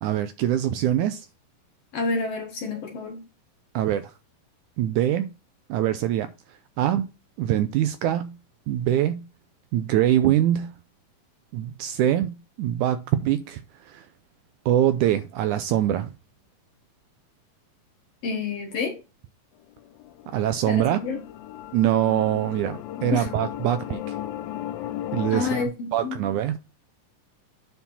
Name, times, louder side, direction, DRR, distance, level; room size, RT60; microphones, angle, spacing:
voice 1, 0.0-1.3 3.7-4.1 4.8-5.3 5.7-7.1 7.4-8.4 8.7-9.2 9.7-10.7 11.5-14.1 14.7-16.1 20.3-21.0 21.7-24.2 25.1-25.7 25.9-26.5, right 11 dB, 80° right, 1.8 m, -24 dB
voice 2, 1.9-3.3 18.2-19.0 20.7-21.2 23.1-23.3 25.3-26.4, left 4 dB, 60° left, 1.7 m, -29 dB
sound 1, 19.7-25.6, left 12 dB, 90° left, 2.4 m, -35 dB
9.1 x 4.8 x 4.1 m
omnidirectional pair, 4.0 m